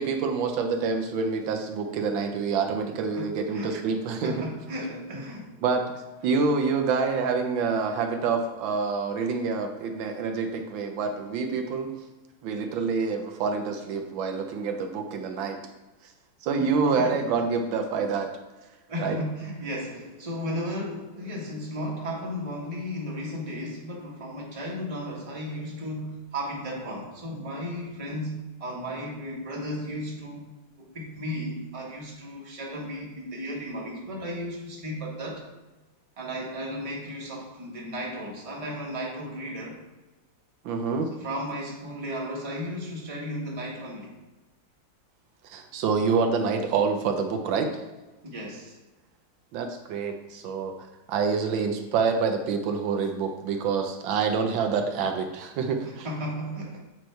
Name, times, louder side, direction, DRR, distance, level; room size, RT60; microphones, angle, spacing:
voice 1, 0.0-4.5 5.6-5.8 6.2-11.9 12.4-15.6 16.4-18.3 19.0-19.2 40.6-41.1 45.4-47.7 49.5-50.7 51.1-56.1, right 5 dB, 85° right, 5 dB, 1.4 m, -27 dB
voice 2, 3.2-3.8 4.2-5.5 16.6-17.4 18.9-30.5 30.9-35.5 36.2-39.8 41.1-44.1 48.2-48.8 55.8-56.8, equal, 20° right, -3 dB, 1.1 m, -35 dB
7.8 x 3.2 x 4.4 m, 1.1 s
omnidirectional pair, 2.1 m